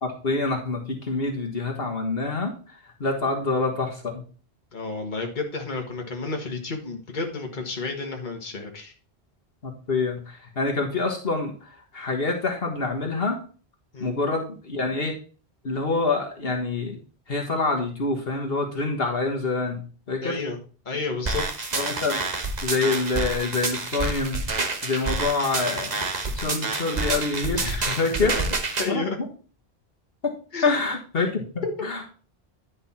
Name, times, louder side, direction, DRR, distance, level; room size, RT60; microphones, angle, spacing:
voice 1, 0.0-4.2 9.6-13.4 14.0-15.1 15.6-17.0 17.3-20.4 21.7-22.2 22.6-24.4 24.8-28.3 28.9-29.0 30.2-30.3 30.6-32.1, left 3 dB, 70° left, 1 dB, 1.8 m, -26 dB
voice 2, 4.7-8.9 13.9-14.1 20.2-20.6 20.9-21.4 27.4-28.0 28.4-28.5 28.8-29.2 30.5-30.7 31.6-31.7, left 3 dB, 50° left, 2 dB, 1.7 m, -31 dB
sound 1, 21.3-28.9, right 3 dB, 45° right, 1.3 m, -28 dB
10.5 x 5.4 x 4.3 m, 0.38 s
omnidirectional pair, 1.1 m